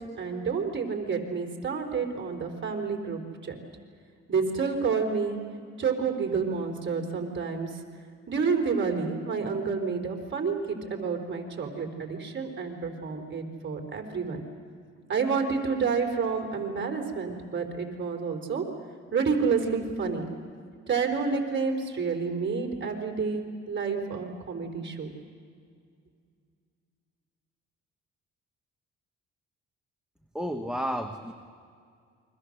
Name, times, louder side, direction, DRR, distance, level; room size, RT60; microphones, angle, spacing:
voice 1, 0.2-3.6 4.3-5.4 5.8-7.7 8.3-14.4 15.1-18.7 19.1-20.3 20.9-25.1, right 5 dB, 40° right, 4 dB, 3.8 m, -29 dB
voice 2, 30.3-31.3, equal, ahead, 5 dB, 1.3 m, -31 dB
28.5 x 23.5 x 6.6 m, 2.2 s
cardioid pair, 90°, 30 cm